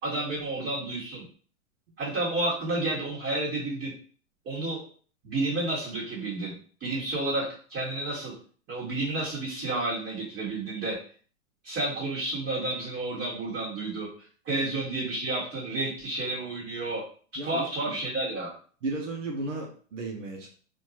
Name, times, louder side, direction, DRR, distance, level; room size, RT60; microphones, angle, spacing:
voice 1, 0.0-1.3 2.0-3.9 4.5-4.8 5.2-6.5 6.8-8.3 8.7-11.0 11.6-14.1 14.5-17.0 17.4-18.5, right 2 dB, 30° right, -7 dB, 1.7 m, -30 dB
voice 2, 17.4-18.0 18.8-20.5, right 2 dB, 70° right, 1 dB, 1.1 m, -35 dB
4.3 x 2.8 x 3.0 m, 0.44 s
hypercardioid pair, 110°, 39 cm